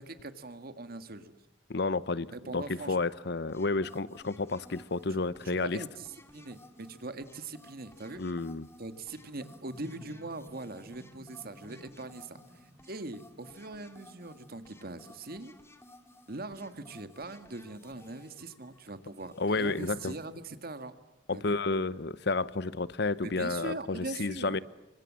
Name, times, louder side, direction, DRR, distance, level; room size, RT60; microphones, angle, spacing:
voice 1, 0.0-1.3 2.3-3.0 5.1-5.2 5.4-6.1 6.3-8.2 8.8-15.5 16.3-20.9 21.3-21.6 23.2-24.6, right 2 dB, 55° right, 10 dB, 1.9 m, -41 dB
voice 2, 1.7-5.8 8.2-8.7 19.4-20.1 21.3-24.6, left 3 dB, 65° left, 17 dB, 0.9 m, -31 dB
sound 1, 3.5-20.2, left 1 dB, 15° left, 2.2 m, -57 dB
sound 2, 6.1-15.6, equal, 5° right, 3.9 m, -57 dB
29.5 x 25.0 x 7.6 m, 1.0 s
head